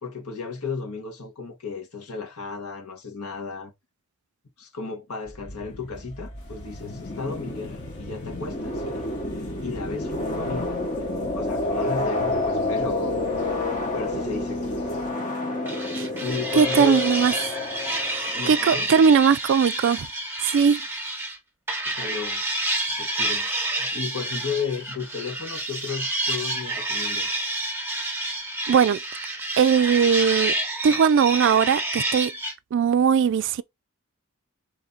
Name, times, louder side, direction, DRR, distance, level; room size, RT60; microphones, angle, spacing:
voice 1, 0.0-3.7 4.6-9.0 9.3-13.1 13.6-14.8 15.8-17.0 18.2-18.9 21.8-22.4 23.0-27.4 31.4-31.8, left 5 dB, 75° left, 1.6 m, -34 dB
sound 1, 5.3-18.7, left 2 dB, 35° left, 1.1 m, -29 dB
sound 2, 6.3-15.1, equal, 50° left, 1.3 m, -45 dB
sound 3, 15.6-21.4 21.7-32.5, right 1 dB, 10° right, 1.1 m, -29 dB
voice 2, 16.6-17.3 18.5-20.1 20.4-20.8 28.7-29.0 29.6-30.5 30.8-32.3 32.7-33.6, right 6 dB, 55° right, 0.3 m, -19 dB
4.2 x 3.2 x 3.7 m
head